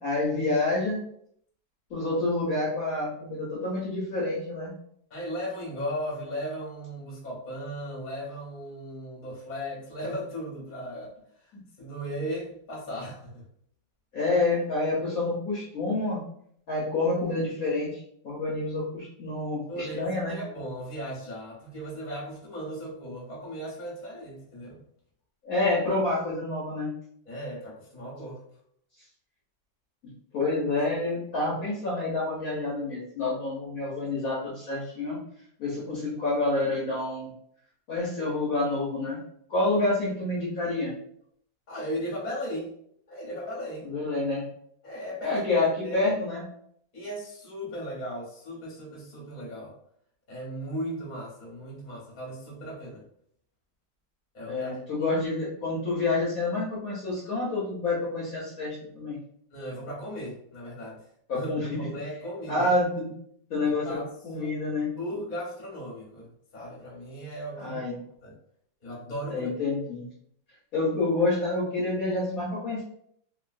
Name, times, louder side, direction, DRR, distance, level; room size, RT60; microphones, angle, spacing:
voice 1, 0.0-1.0 1.9-4.7 14.1-16.2 16.7-20.4 25.4-26.9 30.3-35.2 35.6-37.3 37.9-39.2 39.5-40.9 43.8-44.4 45.2-46.4 54.5-59.2 61.3-61.9 62.5-63.1 63.5-64.0 64.2-64.9 67.6-68.0 69.3-70.1 70.7-72.8, left 2 dB, 60° left, -6 dB, 1.0 m, -28 dB
voice 2, 5.1-11.1 11.4-11.5 11.8-13.4 19.7-24.8 27.2-28.4 41.7-42.8 43.1-43.9 44.8-45.4 45.8-46.2 46.9-49.7 50.3-53.0 54.3-55.1 59.5-61.0 61.3-62.7 63.6-67.8 68.2-68.4 68.8-69.5, equal, 30° left, -4 dB, 0.9 m, -37 dB
3.0 x 2.6 x 2.5 m, 0.67 s
omnidirectional pair, 2.0 m